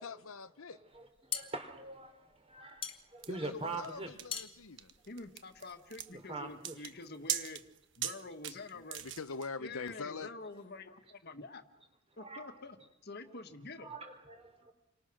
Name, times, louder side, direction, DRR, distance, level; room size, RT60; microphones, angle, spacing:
voice 1, 0.0-0.8 3.3-4.9 8.7-10.3, left 4 dB, 85° left, 1.0 m, -44 dB
sound 1, 0.9-5.9, left 8 dB, 25° left, 1.9 m, -44 dB
voice 2, 0.9-4.1 6.1-6.8 12.1-12.5 13.8-14.7, right 3 dB, 30° right, 4.0 m, -44 dB
sound 2, 3.2-9.5, right 11 dB, 60° right, 1.3 m, -41 dB
voice 3, 5.1-7.6 8.0-9.0 9.6-11.6 12.2-12.8 13.0-13.9, left 3 dB, 50° left, 1.7 m, -47 dB
29.5 x 24.5 x 6.4 m
head